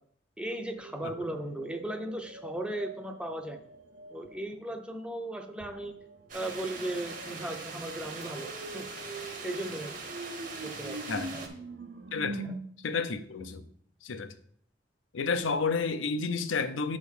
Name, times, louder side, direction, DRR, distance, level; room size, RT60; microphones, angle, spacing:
voice 1, 0.4-3.6 4.1-6.0 6.3-9.9 10.6-11.0 11.3-11.5 12.4-12.6, right 1 dB, 5° right, 0.5 m, -37 dB
sound 1, 0.8-4.4 5.6-12.6, right 2 dB, 70° right, 0.7 m, -44 dB
sound 2, 6.3-11.5, right 4 dB, 45° right, 1.0 m, -41 dB
voice 2, 12.1-12.5 12.8-13.6 14.0-14.3 15.1-17.0, left 4 dB, 90° left, 0.6 m, -30 dB
6.9 x 3.6 x 6.3 m
head